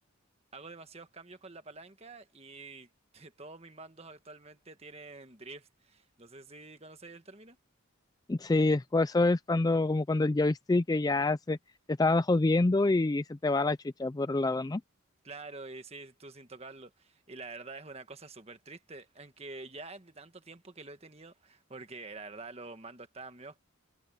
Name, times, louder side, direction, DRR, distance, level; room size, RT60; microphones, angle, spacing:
voice 1, 0.5-7.6 15.2-23.6, right 3 dB, 30° right, 1.5 m, -47 dB
voice 2, 8.3-11.6 12.0-14.8, left 2 dB, 15° left, 0.3 m, -26 dB
head